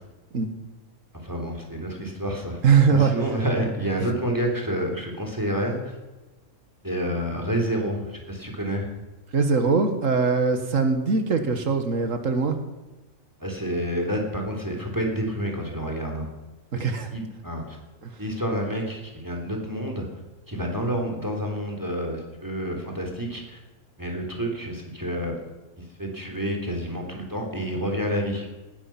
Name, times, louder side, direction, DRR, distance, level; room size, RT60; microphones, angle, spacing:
voice 1, 1.1-2.6 2.9-5.9 6.8-8.9 13.4-16.3 16.7-16.8 17.1-17.8 18.2-20.1 20.5-23.6 24.0-25.3 25.8-28.5, equal, 15° right, 2 dB, 3.2 m, -29 dB
voice 2, 2.6-3.1 9.3-12.6 16.8-17.1 18.0-18.1, right 5 dB, 80° right, 7 dB, 1.9 m, -21 dB
19.0 x 13.0 x 6.0 m, 1.1 s
omnidirectional pair, 1.4 m